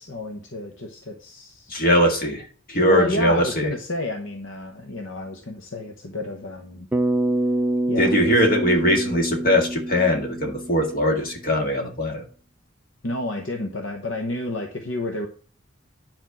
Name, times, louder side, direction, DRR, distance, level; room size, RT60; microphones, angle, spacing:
voice 1, 0.0-1.8 2.7-6.9 7.9-8.3 13.0-15.3, left 2 dB, 60° left, 3 dB, 1.0 m, -30 dB
voice 2, 1.7-3.7 8.0-12.2, equal, 45° left, 3 dB, 1.9 m, -21 dB
Bass guitar, 6.9-11.3, right 1 dB, 10° right, 0.4 m, -26 dB
10.0 x 4.5 x 6.0 m, 0.43 s
head